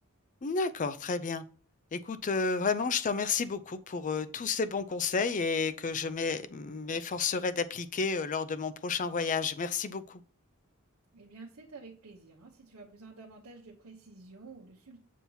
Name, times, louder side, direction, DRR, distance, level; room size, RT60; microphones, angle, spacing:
voice 1, 0.4-1.4 1.9-10.2, left 5 dB, 35° left, 0.5 m, -31 dB
voice 2, 11.1-15.0, right 3 dB, 90° right, 1.0 m, -50 dB
7.3 x 2.9 x 5.5 m
head